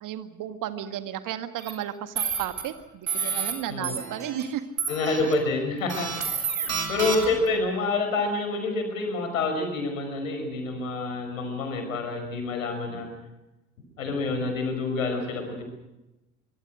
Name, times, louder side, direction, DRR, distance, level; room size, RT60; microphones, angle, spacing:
voice 1, 0.0-4.6 6.7-6.9, right 11 dB, 50° right, 10 dB, 1.9 m, -34 dB
sound 1, 1.6-1.7 2.2-2.6 3.1-3.5 3.8-4.4 4.8-5.3 5.9-7.5, right 6 dB, 80° right, 3.7 m, -29 dB
voice 2, 3.7-4.0 4.9-6.5 6.9-13.1 14.0-15.6, left 3 dB, 75° left, 5 dB, 5.6 m, -28 dB
24.5 x 24.0 x 6.4 m, 0.99 s
figure-of-eight pair, 55°, 41 cm